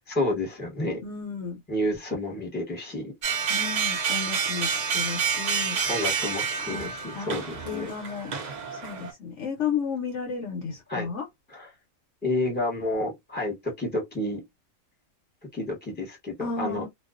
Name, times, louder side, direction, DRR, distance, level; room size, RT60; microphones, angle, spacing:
voice 1, 0.1-1.0 1.7-3.1 3.4-3.5 5.9-7.9 10.9-11.1 11.5-11.7 12.2-14.4 15.5-16.8, left 1 dB, 10° left, 0.8 m, -30 dB
voice 2, 1.0-1.6 3.5-5.8 6.6-7.4 7.7-8.3 8.7-11.3 16.4-16.9, left 6 dB, 65° left, 0.8 m, -33 dB
sound 1, 3.2-9.1, right 6 dB, 65° right, 0.4 m, -28 dB
2.3 x 2.2 x 2.3 m
omnidirectional pair, 1.5 m